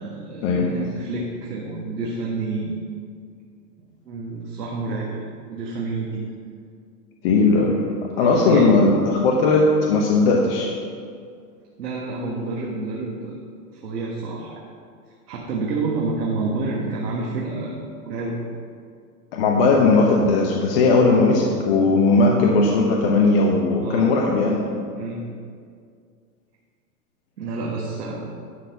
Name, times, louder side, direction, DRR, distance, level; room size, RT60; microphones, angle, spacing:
voice 1, 0.0-2.8 4.1-5.2 5.5-6.3 8.1-8.8 11.8-13.4 13.7-14.6 15.3-18.4 23.8-24.1 25.0-25.3 27.4-28.3, right 3 dB, 85° right, -4 dB, 1.8 m, -29 dB
voice 2, 7.2-7.9 8.2-10.7 19.3-24.6, left 3 dB, 35° left, -1 dB, 0.9 m, -18 dB
11.5 x 4.2 x 6.9 m, 2.2 s
hypercardioid pair, 145°, 48 cm